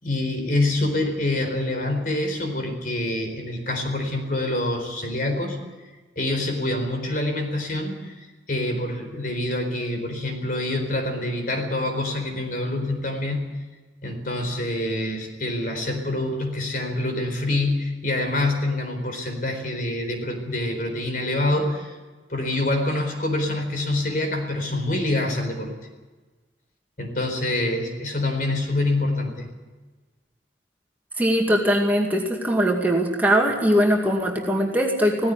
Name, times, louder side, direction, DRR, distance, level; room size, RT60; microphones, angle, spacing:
voice 1, 0.0-5.6 6.2-8.1 8.5-13.6 14.0-21.9 22.3-25.8 27.0-29.5, left 1 dB, 50° left, 4 dB, 4.3 m, -26 dB
voice 2, 31.2-35.3, equal, 10° right, 0 dB, 2.3 m, -21 dB
17.5 x 15.5 x 9.6 m, 1.3 s
head